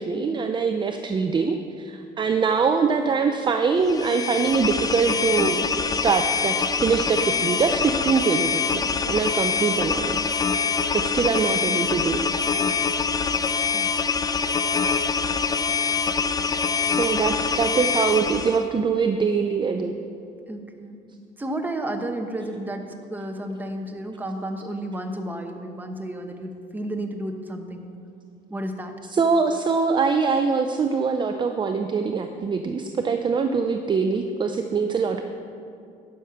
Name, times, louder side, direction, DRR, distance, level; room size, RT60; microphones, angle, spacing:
voice 1, 0.0-10.2 10.9-12.2 16.8-19.9 29.1-35.2, right 5 dB, 30° right, 6 dB, 0.5 m, -23 dB
sound 1, 3.8-18.6, left 5 dB, 20° left, 0.4 m, -24 dB
voice 2, 20.5-21.0 21.4-27.9 28.5-28.9, right 1 dB, 10° right, 4 dB, 0.9 m, -32 dB
10.5 x 6.6 x 5.7 m, 2.5 s
cardioid pair, 110°, 17 cm